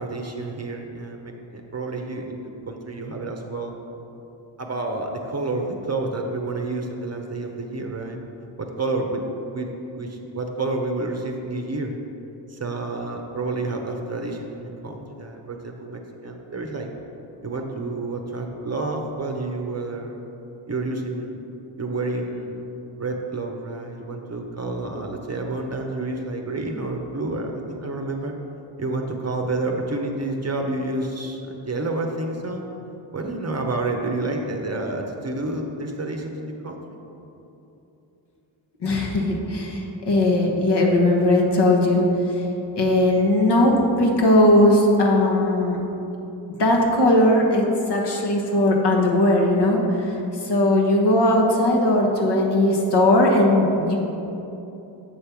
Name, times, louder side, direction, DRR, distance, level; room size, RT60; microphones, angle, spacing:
voice 1, 0.0-3.8 4.6-8.2 8.6-9.2 9.5-9.7 10.0-11.9 12.5-16.9 17.4-20.2 20.7-21.4 21.8-22.6 23.0-28.3 28.8-32.6 33.1-37.0, right 2 dB, 35° right, 3 dB, 0.8 m, -29 dB
voice 2, 38.8-42.4 42.8-45.8 46.5-50.1 50.4-54.0, left 1 dB, 55° left, -1 dB, 1.2 m, -19 dB
7.6 x 3.3 x 5.8 m, 3.0 s
cardioid pair, 50°, 47 cm